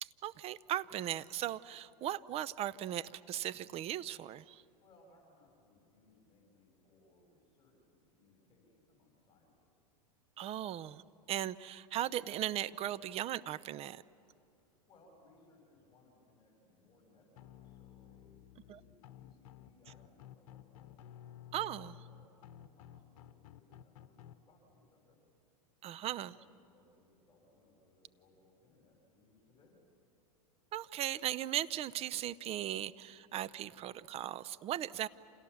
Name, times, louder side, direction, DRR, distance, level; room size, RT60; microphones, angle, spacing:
voice 1, 0.0-4.6 10.4-11.0 11.3-14.0 18.7-18.8 21.5-21.9 25.8-26.4 30.7-35.1, right 12 dB, 30° right, 16 dB, 0.6 m, -38 dB
voice 2, 4.8-9.7 14.6-24.2 24.5-25.2 26.0-29.8 33.5-33.8, left 2 dB, 25° left, 0 dB, 7.8 m, -67 dB
sound 1, 17.4-24.3, left 10 dB, 60° left, 1.4 m, -54 dB
29.0 x 27.5 x 7.2 m, 2.6 s
hypercardioid pair, 115°, 19 cm